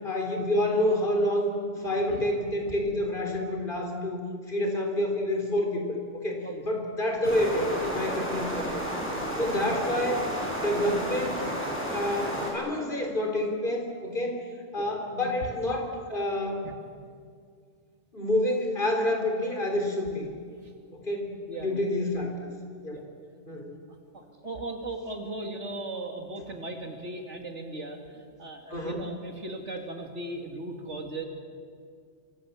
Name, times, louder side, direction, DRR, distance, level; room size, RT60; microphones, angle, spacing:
voice 1, 0.0-4.2 4.5-8.8 9.4-10.2 10.5-11.4 11.9-14.4 14.7-16.6 18.1-20.2 20.9-21.3 21.6-22.5 22.8-23.0 23.5-23.8 28.7-29.0, left 1 dB, 45° left, 2 dB, 4.1 m, -28 dB
voice 2, 1.7-2.3 6.4-6.6 14.8-14.9 16.6-16.7 20.6-20.7 21.5-21.9 22.9-23.0 24.1-31.2, right 2 dB, 75° right, 3 dB, 3.0 m, -38 dB
sound 1, 7.2-12.5, right 1 dB, 10° left, 7.3 m, -32 dB
26.5 x 24.5 x 7.4 m, 2.1 s
omnidirectional pair, 1.2 m